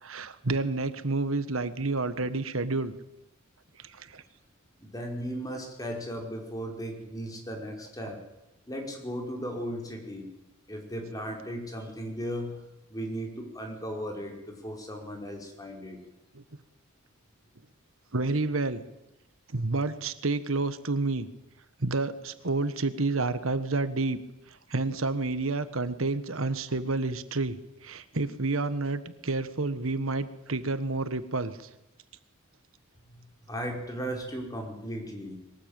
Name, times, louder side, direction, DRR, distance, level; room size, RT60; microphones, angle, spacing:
voice 1, 0.0-2.9 3.8-4.2 16.3-16.4 18.1-18.8 19.5-21.3 21.8-24.2 24.5-27.6 27.8-31.7, right 3 dB, 70° right, 12 dB, 1.5 m, -29 dB
voice 2, 4.8-8.2 8.7-10.3 10.7-12.6 12.9-16.0 33.1-35.4, equal, 15° left, 2 dB, 5.2 m, -36 dB
22.5 x 19.0 x 9.0 m, 0.93 s
head